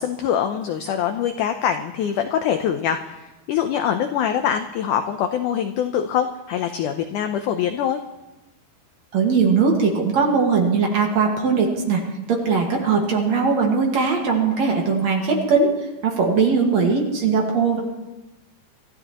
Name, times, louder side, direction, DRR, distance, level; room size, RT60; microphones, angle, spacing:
voice 1, 0.0-8.0, left 9 dB, 85° left, 7 dB, 1.8 m, -24 dB
voice 2, 9.1-12.0 12.3-15.7 16.0-17.8, right 5 dB, 55° right, 1 dB, 2.5 m, -20 dB
26.5 x 13.5 x 3.0 m, 1.1 s
omnidirectional pair, 4.4 m